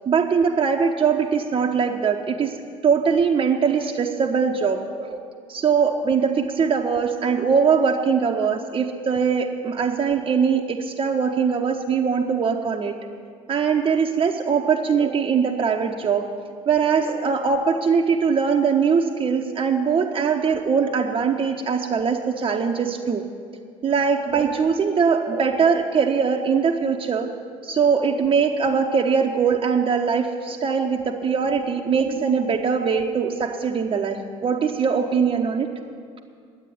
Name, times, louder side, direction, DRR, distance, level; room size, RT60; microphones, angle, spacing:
voice 1, 0.1-5.2 5.5-12.9 13.5-16.3 16.7-23.2 23.8-27.3 27.6-35.7, right 6 dB, 35° right, 1 dB, 0.8 m, -21 dB
10.0 x 8.2 x 9.5 m, 2.1 s
hypercardioid pair, 60°, 16 cm